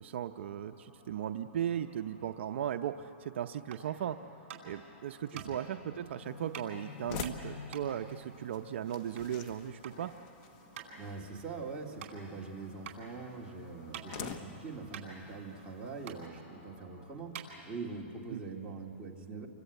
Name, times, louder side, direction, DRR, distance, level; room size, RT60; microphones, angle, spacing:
voice 1, 0.0-4.2 4.6-10.1 18.3-18.4, right 10 dB, 60° right, 7 dB, 0.6 m, -37 dB
sound 1, 0.6-17.2, left 3 dB, 75° left, 3.6 m, -55 dB
sound 2, 3.6-3.9 4.5-4.8 5.3-5.5 6.5-6.7 7.2-9.3 9.6-10.0 10.3-10.4 10.7-10.9 11.4-11.5 12.0-12.1 12.8-13.0 13.4-14.4 14.6-14.7 14.9-15.7 16.0-16.2 16.8-16.9 17.3-18.0, right 9 dB, 40° right, 4.5 m, -46 dB
sound 3, 6.2-16.3, left 6 dB, 35° left, 1.2 m, -49 dB
voice 2, 10.9-19.5, right 4 dB, 10° right, -3 dB, 2.0 m, -43 dB
29.0 x 24.5 x 8.0 m, 2.8 s
hypercardioid pair, 160°, 7 cm